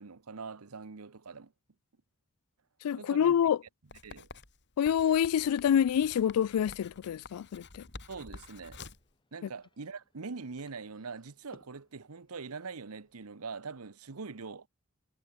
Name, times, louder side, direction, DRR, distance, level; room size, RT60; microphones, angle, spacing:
voice 1, 0.0-1.5 2.9-3.3 4.0-4.3 8.1-8.8 9.3-14.7, right 4 dB, 90° right, 1.0 m, -43 dB
voice 2, 2.8-3.6 4.8-7.8 9.4-9.5, left 9 dB, 85° left, 0.3 m, -27 dB
Writing, 3.9-9.1, left 3 dB, 55° left, 4.8 m, -50 dB
sound 1, 8.2-13.3, left 1 dB, 20° left, 5.6 m, -65 dB
head